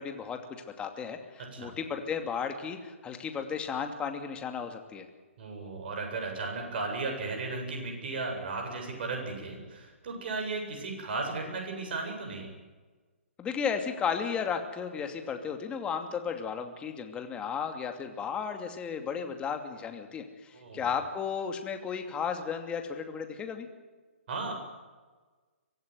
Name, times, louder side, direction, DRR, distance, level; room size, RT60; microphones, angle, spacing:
voice 1, 0.0-5.1 13.4-23.7, left 6 dB, 15° left, 6 dB, 2.6 m, -34 dB
voice 2, 5.4-12.5 20.5-20.9 24.3-24.5, right 3 dB, 50° right, 2 dB, 7.9 m, -35 dB
24.0 x 15.5 x 9.7 m, 1.4 s
hypercardioid pair, 135°, 7 cm